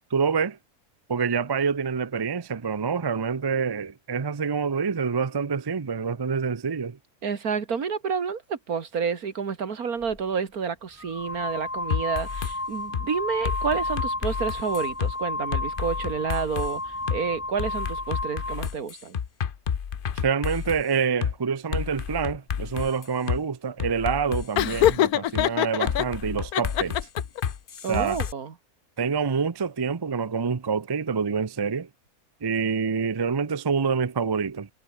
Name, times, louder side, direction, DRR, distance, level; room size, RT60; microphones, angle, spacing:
voice 1, 0.1-0.6 1.1-7.0 20.1-27.0 27.9-28.2 29.0-31.9 32.4-34.7, right 6 dB, 30° right, 0.4 m, -27 dB
voice 2, 7.2-19.2 27.8-28.5, right 6 dB, 80° right, 2.3 m, -29 dB
sound 1, 10.0-10.2 11.0-18.7, left 2 dB, 10° left, 1.0 m, -32 dB
sound 2, 11.9-12.5 12.9-13.1 13.4-15.1 15.5-16.7 17.1-17.2 17.6-20.8 21.2-21.3 21.7-23.4 23.8-25.0 25.4-25.5 25.9-28.3, left 7 dB, 45° left, 0.9 m, -30 dB
Laughter, 24.6-26.1 26.5-27.4, left 12 dB, 85° left, 1.3 m, -23 dB
omnidirectional pair, 1.5 m